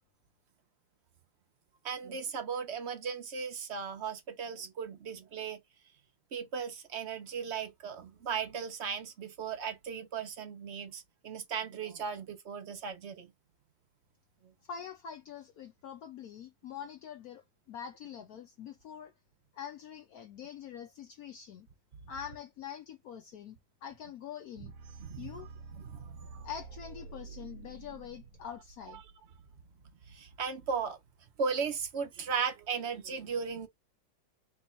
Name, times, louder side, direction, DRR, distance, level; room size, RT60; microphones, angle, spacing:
voice 1, 1.8-5.6 6.3-13.3 25.1-25.3 25.8-26.3 30.1-31.0 31.4-33.7, right 6 dB, 50° right, 0.8 m, -36 dB
voice 2, 14.7-17.4 17.7-19.1 19.5-21.7 22.1-24.7 25.2-25.5 26.4-29.0, left 8 dB, 75° left, 0.8 m, -44 dB
sound 1, 24.7-29.6, right 4 dB, 90° right, 1.5 m, -49 dB
3.5 x 2.9 x 4.3 m
omnidirectional pair, 2.1 m